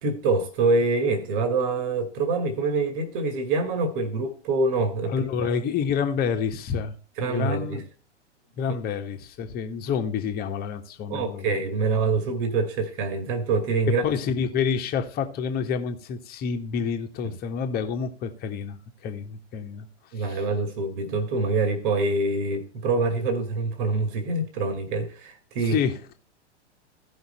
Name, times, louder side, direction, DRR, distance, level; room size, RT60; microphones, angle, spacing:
voice 1, 0.0-5.3 7.2-7.8 11.1-14.0 17.2-17.3 20.1-25.8, right 3 dB, 45° right, 2.1 m, -25 dB
voice 2, 5.1-6.9 7.2-7.8 8.6-11.5 13.9-19.9 20.1-20.4 25.6-26.1, left 6 dB, 25° left, 1.5 m, -28 dB
15.5 x 5.8 x 4.3 m
figure-of-eight pair, 110°, 35 cm